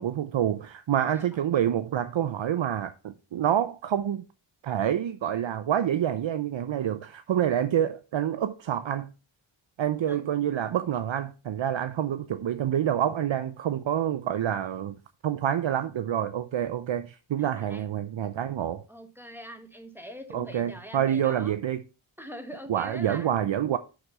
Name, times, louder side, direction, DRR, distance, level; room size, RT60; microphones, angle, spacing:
voice 1, 0.0-4.2 4.6-9.1 9.8-14.9 15.2-18.8 20.3-21.8 22.7-23.8, right 10 dB, 65° right, 0.7 m, -27 dB
voice 2, 17.4-17.9 18.9-21.5 22.2-23.3, equal, 5° right, 1.5 m, -43 dB
6.5 x 6.2 x 5.4 m
wide cardioid pair, 85°, 49 cm